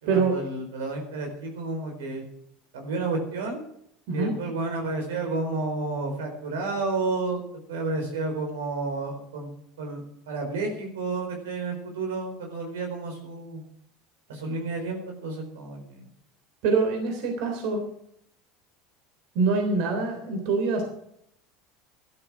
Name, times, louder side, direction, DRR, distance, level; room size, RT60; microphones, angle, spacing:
voice 1, 0.0-2.2 2.7-3.6 4.1-7.4 7.7-9.5 9.8-13.6 14.3-16.1, right 3 dB, 90° right, 3 dB, 4.3 m, -31 dB
voice 2, 16.6-17.8 19.3-20.8, right 4 dB, 70° right, 4 dB, 3.4 m, -24 dB
12.5 x 12.0 x 6.1 m, 0.74 s
supercardioid pair, 100°, 0 cm